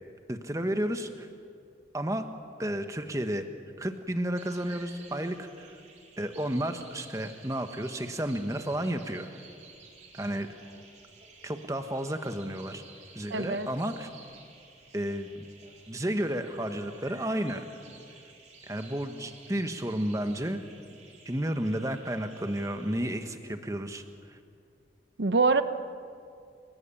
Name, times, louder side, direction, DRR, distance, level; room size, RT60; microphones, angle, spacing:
voice 1, 0.3-1.3 1.9-2.3 2.6-3.5 3.8-5.7 6.2-9.3 10.1-10.5 11.4-12.8 13.1-14.1 14.9-15.4 15.9-17.6 18.7-20.6 21.2-24.0, right 1 dB, 15° right, 7 dB, 1.3 m, -32 dB
sound 1, 4.3-23.1, right 3 dB, 40° right, 4.4 m, -53 dB
voice 2, 13.3-13.7 25.2-25.6, right 4 dB, 70° right, 11 dB, 0.9 m, -24 dB
29.5 x 17.0 x 8.6 m, 2.4 s
head